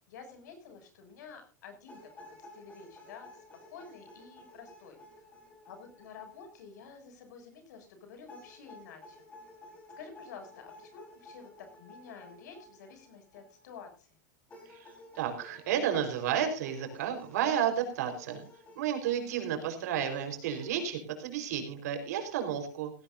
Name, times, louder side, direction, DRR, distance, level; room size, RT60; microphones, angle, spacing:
voice 1, 0.0-3.4 3.7-5.0 5.6-9.2 10.0-14.1 19.4-19.7, left 6 dB, 65° left, 6 dB, 7.1 m, -50 dB
sound 1, 1.9-7.0 8.3-13.8 14.5-19.4 20.1-20.9, left 1 dB, 15° left, 4.6 m, -54 dB
voice 2, 14.7-18.4 18.8-22.9, right 9 dB, 60° right, 5 dB, 4.5 m, -32 dB
17.0 x 17.0 x 2.7 m, 0.34 s
supercardioid pair, 175°, 10 cm